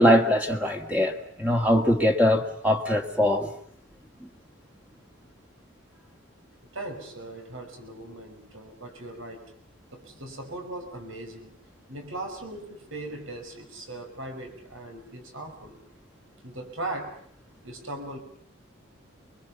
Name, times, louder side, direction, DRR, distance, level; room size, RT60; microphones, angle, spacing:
voice 1, 0.0-3.5, equal, 5° right, 2.0 m, -22 dB
voice 2, 6.7-9.5 9.9-11.5 11.9-15.8 16.4-17.2 17.6-18.2, right 2 dB, 75° right, 5.8 m, -39 dB
29.0 x 23.0 x 7.2 m
head